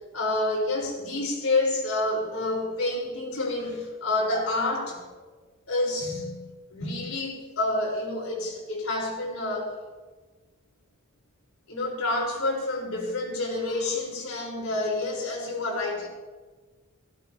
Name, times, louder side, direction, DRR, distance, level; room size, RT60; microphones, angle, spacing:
voice 1, 0.1-5.2 5.7-6.4 6.7-9.8 11.7-16.1, left 2 dB, 80° left, -2 dB, 4.6 m, -28 dB
17.5 x 16.0 x 2.9 m, 1.3 s
head